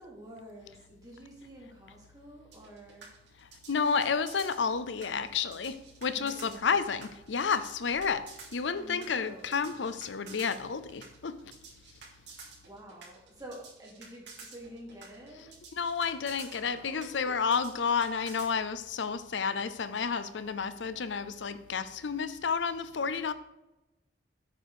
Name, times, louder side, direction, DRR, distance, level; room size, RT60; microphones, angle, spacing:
voice 1, 0.0-3.5 6.1-6.9 8.8-9.7 12.3-15.5 16.5-17.4, equal, 20° right, 2.7 m, -49 dB
sound 1, 2.5-18.5, right 4 dB, 70° right, 3.2 m, -50 dB
voice 2, 3.7-8.3 8.5-11.4 15.8-23.3, left 5 dB, 80° left, 0.6 m, -31 dB
8.3 x 5.1 x 6.4 m
head